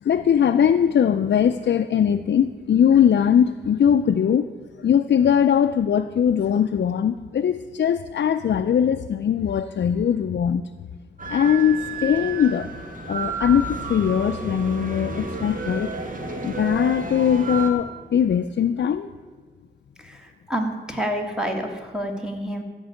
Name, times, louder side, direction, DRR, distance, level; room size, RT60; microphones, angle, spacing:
voice 1, 0.0-4.5 4.8-10.6 11.3-12.7 13.1-15.9 16.4-19.1, left 8 dB, 65° left, 8 dB, 0.4 m, -20 dB
sound 1, 11.2-17.7, right 3 dB, 45° right, 1.7 m, -31 dB
voice 2, 20.0-22.6, equal, 5° right, 3 dB, 1.9 m, -28 dB
14.0 x 5.3 x 9.2 m, 1.5 s
wide cardioid pair, 80°, 19 cm